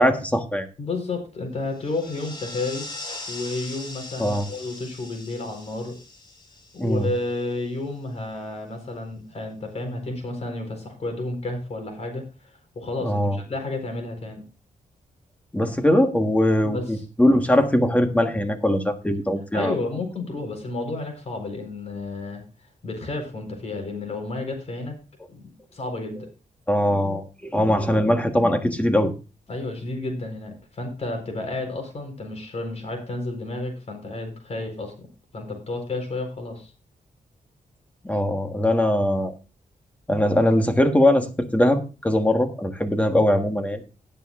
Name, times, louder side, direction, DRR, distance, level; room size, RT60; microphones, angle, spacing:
voice 1, 0.0-0.7 4.2-4.5 6.8-7.1 13.0-13.4 15.5-19.7 26.7-29.1 38.0-39.3 40.1-43.8, left 1 dB, 10° left, 6 dB, 1.4 m, -21 dB
voice 2, 0.8-2.9 3.3-6.0 6.7-14.4 16.6-17.0 19.5-22.4 22.8-25.0 25.3-26.3 29.5-35.1 35.3-36.7, left 2 dB, 45° left, 4 dB, 4.3 m, -31 dB
sound 1, 1.7-7.5, left 2 dB, 30° left, 2.4 m, -40 dB
19.5 x 6.8 x 2.5 m, 0.32 s
wide cardioid pair, 140°, 15 cm